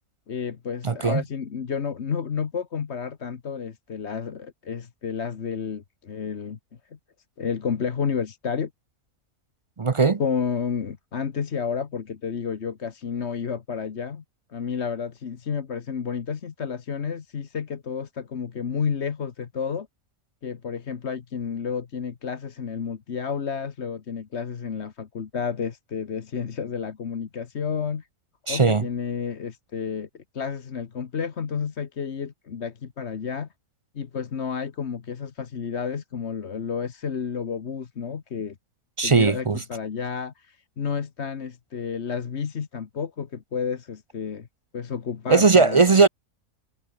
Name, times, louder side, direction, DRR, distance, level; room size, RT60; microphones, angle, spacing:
voice 1, 0.3-6.6 6.9-7.0 7.4-8.7 10.2-14.2 14.5-19.9 20.4-28.1 28.5-33.5 33.9-38.6 39.0-44.5 44.7-46.0, left 6 dB, 50° left, 1.4 m, -31 dB
voice 2, 0.8-1.2 9.8-10.2 28.5-28.8 39.0-39.6 45.3-46.1, right 4 dB, 45° right, 0.4 m, -18 dB
omnidirectional pair, 1.6 m